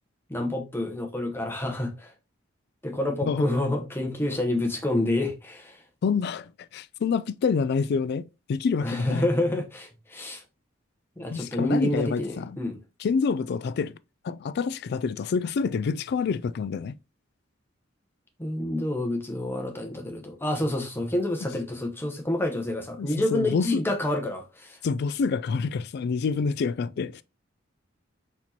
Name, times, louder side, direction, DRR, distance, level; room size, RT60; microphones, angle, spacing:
voice 1, 0.3-2.1 2.8-5.8 8.8-10.4 11.2-12.8 18.4-24.8, left 1 dB, 10° left, 1.0 m, -28 dB
voice 2, 6.0-9.2 11.3-12.6 13.0-13.9 14.2-16.9 23.0-23.8 24.8-27.2, left 5 dB, 55° left, 0.3 m, -27 dB
4.4 x 4.2 x 2.9 m
head